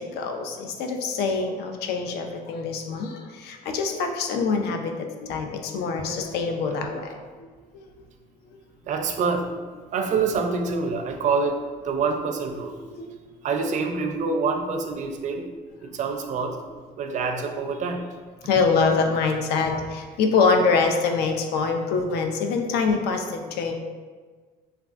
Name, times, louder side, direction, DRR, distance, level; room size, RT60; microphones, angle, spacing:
voice 1, 0.0-7.5 7.7-7.9 8.5-8.6 13.0-13.1 13.5-13.6 18.4-23.7, left 4 dB, 75° left, 4 dB, 0.4 m, -25 dB
voice 2, 8.9-9.5 9.9-12.8 13.4-15.5 15.9-16.6 17.0-18.0, right 4 dB, 45° right, 4 dB, 0.4 m, -26 dB
3.4 x 2.2 x 2.4 m, 1.4 s
cardioid pair, 110°, 17 cm